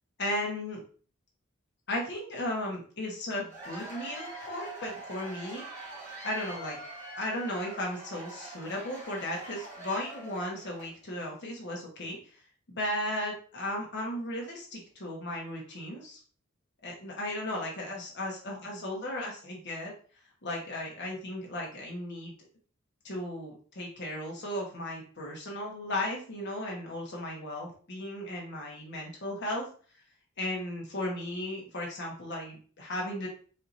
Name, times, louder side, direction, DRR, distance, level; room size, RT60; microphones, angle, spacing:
voice 1, 0.2-0.8 1.9-5.6 6.2-6.8 7.2-12.2 12.7-16.2 16.8-19.9 20.4-22.3 23.0-29.7 30.4-33.3, left 1 dB, 55° left, -2 dB, 1.2 m, -35 dB
Cheering / Applause / Crowd, 3.3-11.0, right 2 dB, 15° right, 1.4 m, -44 dB
4.4 x 2.8 x 2.6 m, 0.41 s
head